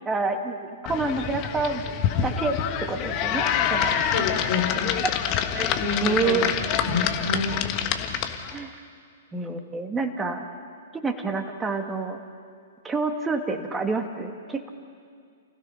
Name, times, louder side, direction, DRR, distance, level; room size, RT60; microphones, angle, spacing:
voice 1, 0.1-1.8 2.2-4.3 5.5-6.5 8.5-8.7 9.3-10.5 10.9-12.2 12.8-14.7, right 4 dB, 15° right, 5 dB, 2.0 m, -28 dB
sound 1, 0.9-8.6, left 8 dB, 35° left, 1.5 m, -26 dB
voice 2, 4.1-4.9 5.7-6.5 6.8-7.6, left 4 dB, 60° left, 3 dB, 3.3 m, -28 dB
29.5 x 16.0 x 5.7 m, 2.2 s
figure-of-eight pair, 115°, 0 cm